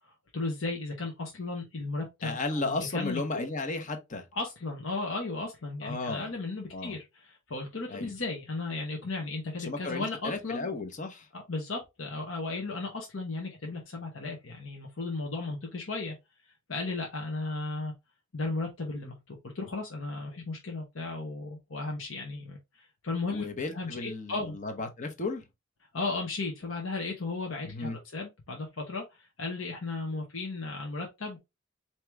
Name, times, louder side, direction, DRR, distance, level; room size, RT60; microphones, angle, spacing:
voice 1, 0.3-3.5 4.3-10.7 11.3-16.1 16.7-17.9 18.3-24.6 25.9-31.4, left 3 dB, 75° left, 1.1 m, -35 dB
voice 2, 2.2-4.2 5.8-6.3 6.7-7.0 7.9-8.1 9.6-11.3 23.3-25.4 27.7-28.0, left 3 dB, 40° left, 0.9 m, -34 dB
4.6 x 3.0 x 3.4 m
head